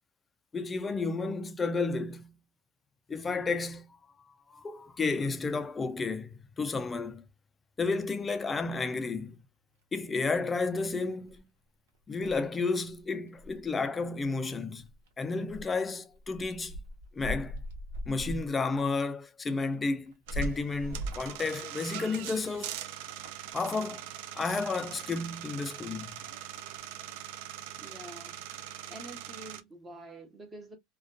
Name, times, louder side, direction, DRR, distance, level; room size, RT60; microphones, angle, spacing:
voice 1, 0.5-2.3 3.1-4.0 4.5-7.2 7.8-9.4 9.9-11.4 12.1-14.9 15.2-16.8 17.1-17.6 18.1-22.8 23.5-24.1 24.4-26.2, left 4 dB, 15° left, 0.3 m, -32 dB
sound 1, 9.8-9.9 10.3-10.9 11.3-11.4 11.9-12.0 12.2-12.4 12.9-13.7 14.0-14.5 14.8-15.2 15.5-15.8 16.1-18.5 18.8-18.9 19.7-21.4 22.1-22.6 23.1-23.6 25.9-26.8, right 1 dB, 85° right, 1.0 m, -40 dB
sound 2, 20.3-29.6, right 11 dB, 70° right, 0.3 m, -42 dB
voice 2, 27.8-28.4 28.9-30.8, right 1 dB, 15° right, 0.6 m, -47 dB
2.4 x 2.2 x 2.3 m
supercardioid pair, 145°, 0 cm